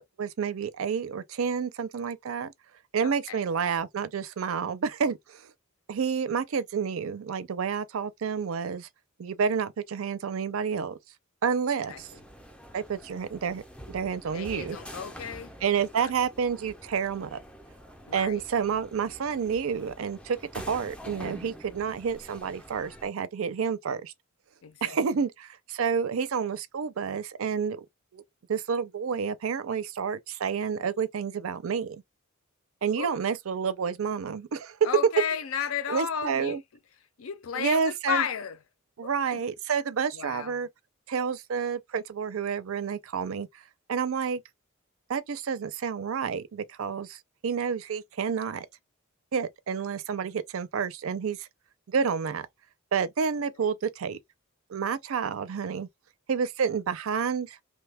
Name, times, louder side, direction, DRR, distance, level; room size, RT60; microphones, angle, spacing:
voice 1, 0.0-2.5 2.9-5.4 5.9-8.9 9.2-11.0 11.4-12.1 12.7-13.6 13.9-14.8 15.6-17.4 18.1-24.1 24.8-27.8 28.1-28.2 28.5-32.0 32.8-34.8 35.9-36.6 37.6-38.3 39.0-40.7 41.1-43.5 43.9-44.4 45.1-48.7 49.3-51.5 51.9-52.5 52.9-54.2 54.7-55.9 56.3-57.6, right 6 dB, 70° right, 0.4 m, -29 dB
voice 2, 3.0-3.4 11.8-12.2 14.3-15.5 16.0-16.1 18.1-18.4 24.6-25.0 32.9-33.2 34.8-36.6 37.2-38.6 39.0-39.4 40.1-40.6, left 7 dB, 70° left, 0.5 m, -33 dB
sound 1, 11.8-23.1, equal, 5° left, 0.4 m, -46 dB
3.0 x 2.2 x 3.4 m
head